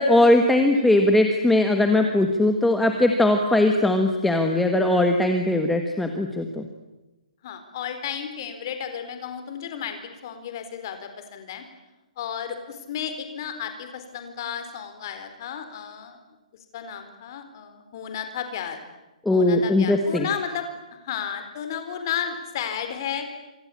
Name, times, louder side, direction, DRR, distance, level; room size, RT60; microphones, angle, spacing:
voice 1, 0.0-6.7 19.2-20.3, left 1 dB, ahead, 4 dB, 1.2 m, -20 dB
voice 2, 7.4-11.6 12.2-16.2 16.7-18.8 19.3-23.3, left 8 dB, 30° left, 8 dB, 4.1 m, -33 dB
26.5 x 26.0 x 8.6 m, 1.0 s
hypercardioid pair, 175°, 4 cm